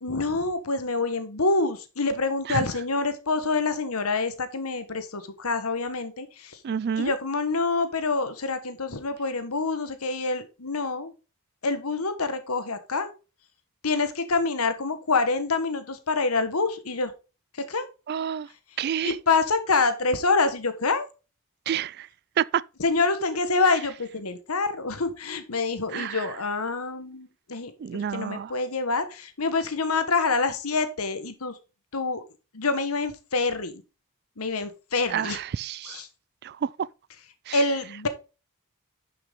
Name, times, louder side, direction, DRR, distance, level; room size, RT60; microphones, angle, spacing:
voice 1, 0.0-6.6 7.0-11.1 11.6-13.1 13.8-17.1 17.7-17.9 19.0-21.1 22.8-27.7 28.1-31.5 31.9-32.2 32.5-33.8 34.4-35.4 35.9-36.0 37.5-38.1, left 3 dB, 80° left, 1.5 m, -26 dB
voice 2, 6.6-7.1 18.1-18.5 18.8-19.2 21.7-22.1 22.4-22.6 25.9-26.4 27.8-28.6 35.1-36.0 36.4-36.9 37.5-37.6, right 8 dB, 45° right, 0.3 m, -29 dB
10.5 x 6.0 x 3.7 m
head